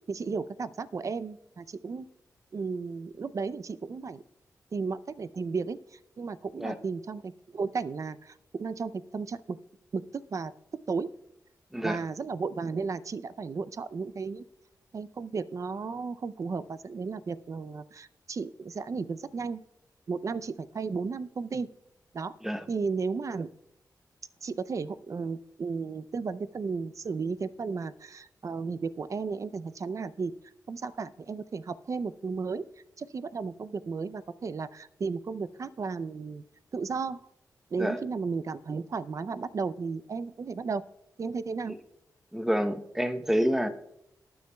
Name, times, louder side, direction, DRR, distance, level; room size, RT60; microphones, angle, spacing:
voice 1, 0.1-2.1 2.5-4.2 4.7-9.6 9.9-10.5 10.9-11.1 11.8-14.4 14.9-19.6 20.1-21.7 22.1-22.3 22.7-23.5 24.4-30.3 30.7-32.7 33.0-36.4 36.7-37.3 37.7-40.8 41.2-41.8, right 4 dB, 50° right, 15 dB, 0.5 m, -34 dB
voice 2, 42.3-43.7, equal, 5° right, 8 dB, 0.9 m, -28 dB
19.5 x 9.5 x 2.3 m, 0.81 s
cardioid pair, 75°, 7 cm